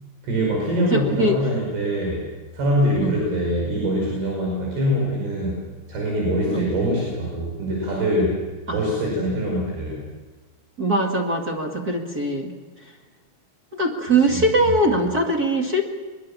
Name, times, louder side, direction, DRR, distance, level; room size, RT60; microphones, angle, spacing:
voice 1, 0.2-2.3 2.5-5.6 5.9-8.4 8.7-10.0 14.3-14.7, equal, 80° right, -2 dB, 7.4 m, -24 dB
voice 2, 0.9-1.4 3.0-3.2 6.5-6.7 8.7-9.2 10.8-12.5 12.8-12.9 13.7-15.8, right 1 dB, 35° right, 1 dB, 1.7 m, -22 dB
23.5 x 22.5 x 7.2 m, 1.2 s
omnidirectional pair, 4.5 m